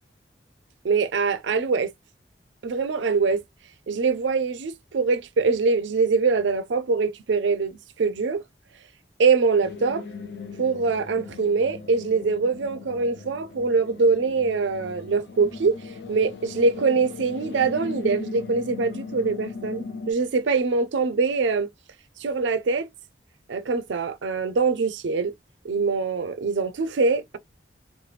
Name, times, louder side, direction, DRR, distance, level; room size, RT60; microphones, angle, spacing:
voice 1, 0.8-1.9 2.6-3.4 3.9-8.4 9.2-10.1 10.6-15.7 16.1-21.7 22.2-22.9 23.5-25.3 25.6-27.4, right 4 dB, 85° right, 0.5 m, -23 dB
sound 1, 9.6-20.1, left 4 dB, 70° left, 0.6 m, -38 dB
3.1 x 2.1 x 3.2 m
head